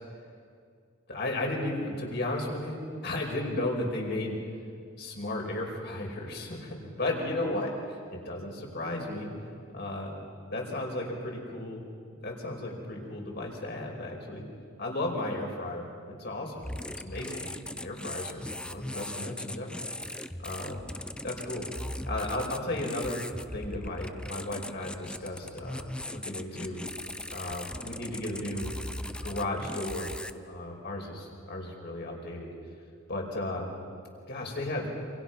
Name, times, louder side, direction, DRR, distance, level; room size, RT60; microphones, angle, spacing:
voice 1, 1.1-4.4 5.0-9.3 9.7-10.1 10.5-11.8 12.2-14.4 14.8-16.6 17.0-19.8 20.4-20.8 21.2-21.7 22.1-23.2 23.5-26.8 27.3-28.7 29.2-30.1 30.5-32.5 33.1-33.7 34.3-34.9, left 1 dB, 55° left, 0 dB, 5.2 m, -34 dB
sound 1, 16.6-30.3, left 1 dB, 5° left, 0.6 m, -39 dB
27.5 x 26.5 x 5.9 m, 2.3 s
head